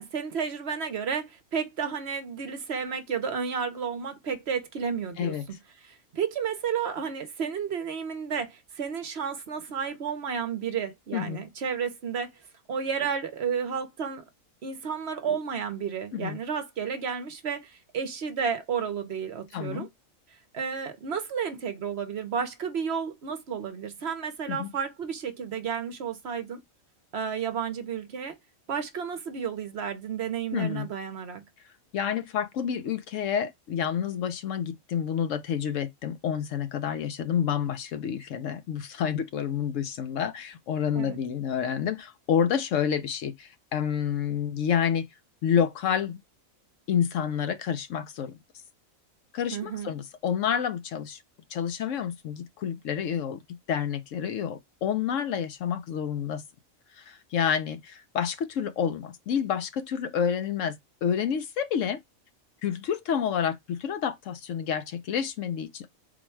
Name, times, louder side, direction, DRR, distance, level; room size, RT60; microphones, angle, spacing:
voice 1, 0.0-5.3 5.8-12.3 12.7-14.2 14.6-19.9 20.5-26.6 27.1-28.4 28.7-31.4 40.9-41.2 49.5-49.9, right 6 dB, 55° right, 0.9 m, -32 dB
voice 2, 5.2-5.5 11.1-11.4 16.1-16.4 19.5-19.9 24.5-24.7 30.5-30.9 31.9-45.1 45.4-46.2 46.9-48.4 49.3-51.2 51.5-53.4 53.7-56.4 56.9-62.0 62.6-66.0, left 8 dB, 70° left, 0.9 m, -29 dB
4.1 x 2.2 x 4.4 m
omnidirectional pair, 1.4 m